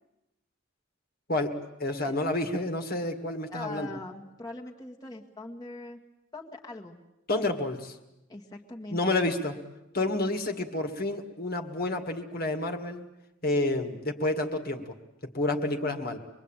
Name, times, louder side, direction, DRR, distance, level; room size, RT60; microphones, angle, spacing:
voice 1, 1.3-3.9 7.3-8.0 8.9-9.6 9.9-13.0 13.4-14.9 15.3-16.2, left 2 dB, 50° left, 6 dB, 2.0 m, -29 dB
voice 2, 3.5-6.0 6.3-7.0 8.3-9.2, left 2 dB, 20° left, -1 dB, 1.7 m, -41 dB
25.5 x 22.0 x 9.0 m, 0.91 s
head